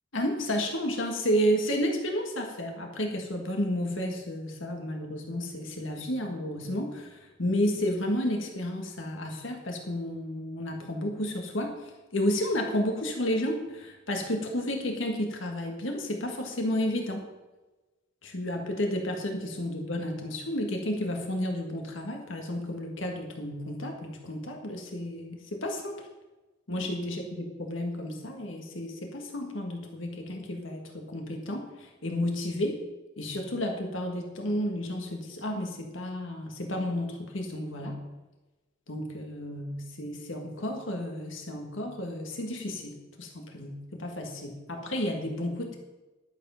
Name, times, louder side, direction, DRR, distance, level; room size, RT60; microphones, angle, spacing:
voice 1, 0.1-17.2 18.2-26.1 26.7-32.8 33.2-38.0 38.9-45.8, equal, 70° left, 2 dB, 1.7 m, -32 dB
11.5 x 8.0 x 5.7 m, 1.1 s
head